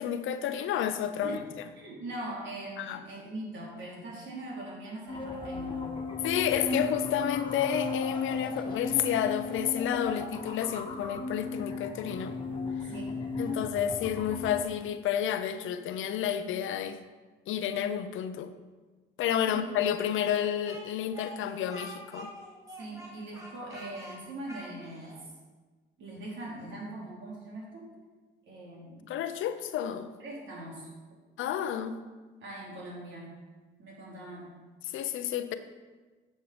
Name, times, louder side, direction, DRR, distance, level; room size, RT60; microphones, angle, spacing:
voice 1, 0.0-1.4 2.8-3.0 6.2-12.4 13.4-17.0 17.5-18.5 19.2-22.3 29.1-30.1 31.4-32.0 34.9-35.5, left 9 dB, 85° left, 10 dB, 0.7 m, -30 dB
voice 2, 1.1-1.4 1.8-5.9 12.9-13.2 19.5-19.6 22.8-25.2 26.0-27.9 28.5-29.0 30.2-30.9 32.4-33.3 33.8-34.5, right 1 dB, 70° right, -3 dB, 3.4 m, -41 dB
sound 1, 5.1-14.6, left 3 dB, 25° left, 1.6 m, -35 dB
Speech, 20.1-25.2, equal, 15° right, 2.7 m, -46 dB
10.0 x 6.6 x 5.0 m, 1.3 s
cardioid pair, 90°, 20 cm